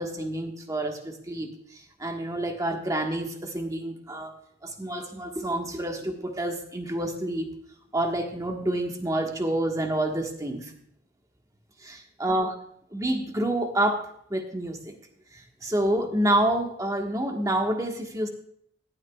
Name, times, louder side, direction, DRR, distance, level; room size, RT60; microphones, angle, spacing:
voice 1, 0.0-1.5 2.0-4.3 4.6-7.5 7.9-10.7 11.8-12.5 12.9-14.9 15.6-18.3, right 1 dB, 20° right, 3 dB, 1.5 m, -28 dB
17.0 x 11.5 x 2.4 m, 0.68 s
head